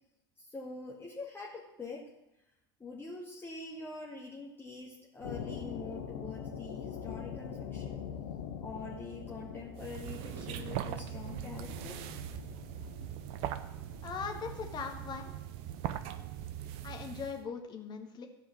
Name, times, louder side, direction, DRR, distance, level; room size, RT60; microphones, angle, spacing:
voice 1, 0.4-2.1 2.8-8.0 8.6-12.2, left 3 dB, 20° left, -3 dB, 1.8 m, -45 dB
sound 1, 5.2-15.1, left 7 dB, 70° left, 1.1 m, -44 dB
sound 2, 9.8-17.5, right 11 dB, 55° right, 0.7 m, -41 dB
voice 2, 14.0-15.3 16.8-18.3, left 6 dB, 35° left, 3 dB, 1.7 m, -40 dB
13.5 x 4.9 x 7.5 m, 0.88 s
figure-of-eight pair, 70°, 12 cm